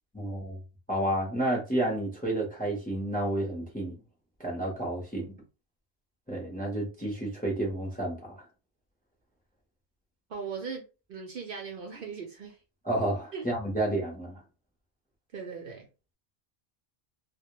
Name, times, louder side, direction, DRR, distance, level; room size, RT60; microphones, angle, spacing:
voice 1, 0.1-0.6 0.9-4.0 4.4-5.3 6.3-8.3 12.8-14.3, right 1 dB, 10° left, 0.6 m, -30 dB
voice 2, 10.3-12.6 13.3-13.4 15.3-15.9, right 5 dB, 60° right, 0.7 m, -39 dB
2.1 x 2.1 x 2.9 m
omnidirectional pair, 1.1 m